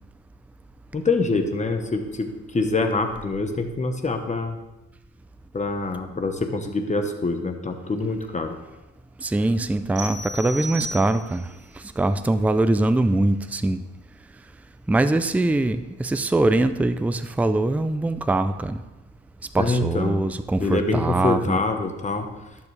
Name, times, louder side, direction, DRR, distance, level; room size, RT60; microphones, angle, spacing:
voice 1, 0.9-4.6 5.5-8.6 19.6-20.3 20.6-22.3, left 3 dB, 25° left, 6 dB, 1.1 m, -25 dB
voice 2, 9.2-11.5 11.7-13.8 14.9-18.8 19.5-21.6, right 2 dB, 5° right, 10 dB, 0.4 m, -22 dB
sound 1, 10.0-11.5, right 1 dB, 35° right, 3.6 m, -34 dB
12.0 x 7.1 x 3.3 m, 1.0 s
cardioid pair, 90°, 30 cm